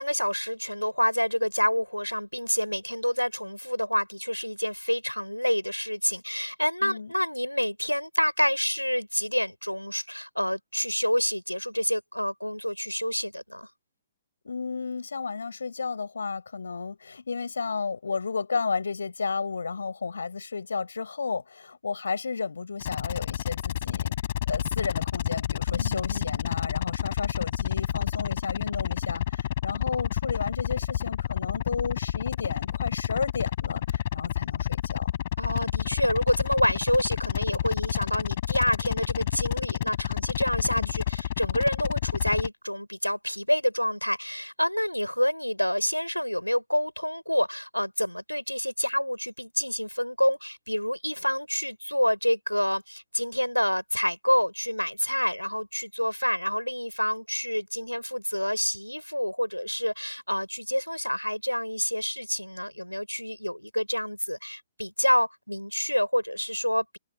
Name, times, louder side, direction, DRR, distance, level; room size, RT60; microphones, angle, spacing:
voice 1, 0.0-13.7 25.7-26.4 35.4-67.0, equal, 90° left, 6.5 m, -28 dB
voice 2, 6.8-7.1 14.4-24.1 24.5-35.1 40.8-40.9, left 4 dB, 65° left, 7.1 m, -32 dB
sound 1, 22.8-42.5, left 12 dB, 45° left, 7.9 m, -29 dB
figure-of-eight pair, 120°, 0 cm